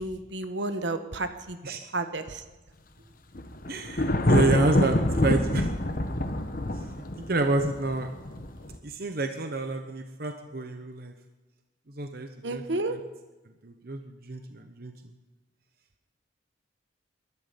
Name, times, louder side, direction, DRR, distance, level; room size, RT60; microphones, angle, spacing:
voice 1, 0.0-1.6 1.9-2.4 12.4-13.0, right 2 dB, 65° right, 9 dB, 1.2 m, -31 dB
Thunder, 3.3-8.8, left 1 dB, 45° left, 1.2 m, -26 dB
voice 2, 3.7-5.7 6.7-8.1 8.8-11.1 11.9-12.6 13.6-15.1, right 2 dB, 50° right, 6 dB, 1.0 m, -29 dB
21.5 x 12.0 x 5.2 m, 1.2 s
head